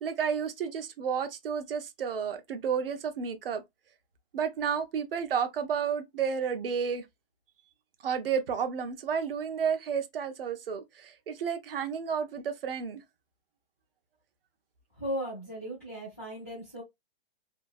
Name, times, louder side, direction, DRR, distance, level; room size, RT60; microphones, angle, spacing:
voice 1, 0.0-3.6 4.3-7.0 8.0-13.0, right 7 dB, 70° right, 0.8 m, -31 dB
voice 2, 15.0-16.8, equal, 15° left, 0.3 m, -36 dB
2.8 x 2.3 x 2.5 m
hypercardioid pair, 180°, 29 cm